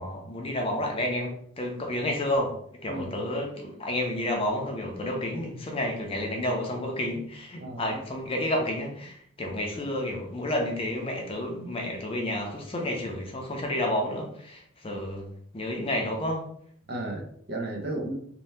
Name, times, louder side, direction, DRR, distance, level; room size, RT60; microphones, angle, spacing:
voice 1, 0.0-2.5 2.8-15.3 15.5-16.5, left 1 dB, 25° left, 1 dB, 0.5 m, -30 dB
voice 2, 7.6-8.0 16.9-18.2, right 1 dB, 50° right, 1 dB, 0.6 m, -34 dB
2.7 x 2.2 x 3.2 m, 0.66 s
head